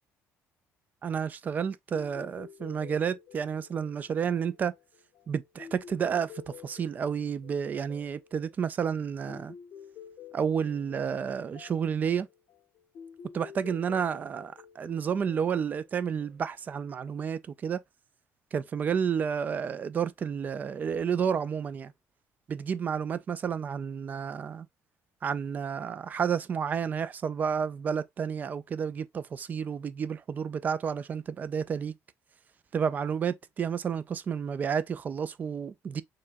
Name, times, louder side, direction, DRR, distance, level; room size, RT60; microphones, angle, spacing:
voice 1, 1.0-4.7 5.3-6.3 6.6-9.6 10.3-12.3 13.3-17.8 18.5-21.9 22.5-24.7 25.2-31.9 32.7-36.0, right 7 dB, 30° right, 0.3 m, -31 dB
sound 1, 1.9-16.7, left 7 dB, 45° left, 0.6 m, -51 dB
4.5 x 3.1 x 2.5 m
cardioid pair, 160°, 6 cm